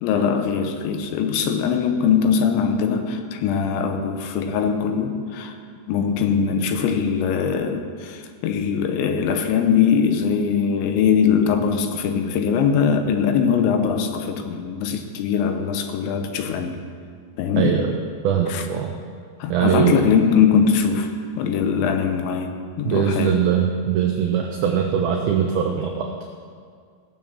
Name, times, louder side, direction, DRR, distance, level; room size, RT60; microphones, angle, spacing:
voice 1, 0.0-5.5 5.9-16.8 17.4-17.8 18.5-18.6 19.4-23.4, left 6 dB, 85° left, 6 dB, 3.4 m, -21 dB
voice 2, 17.6-18.0 18.2-18.9 19.5-20.1 22.8-26.1, right 8 dB, 75° right, 2 dB, 2.3 m, -21 dB
16.5 x 7.3 x 7.4 m, 2.1 s
omnidirectional pair, 5.2 m